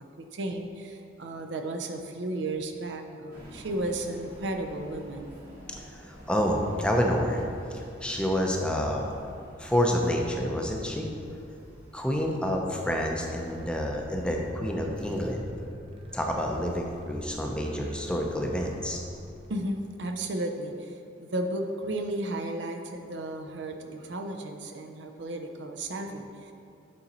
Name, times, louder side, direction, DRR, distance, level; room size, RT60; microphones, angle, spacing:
voice 1, 0.2-5.4 19.5-26.5, right 1 dB, 70° right, 4 dB, 0.6 m, -34 dB
sound 1, 3.3-15.3, equal, 50° right, 1.6 m, -49 dB
voice 2, 5.9-7.4 7.7-9.1 9.6-11.1 11.9-15.5 16.1-19.0, equal, 5° left, 1 dB, 0.5 m, -28 dB
sound 2, 13.3-19.5, left 1 dB, 30° right, 0.7 m, -48 dB
8.5 x 4.0 x 4.2 m, 2.5 s
head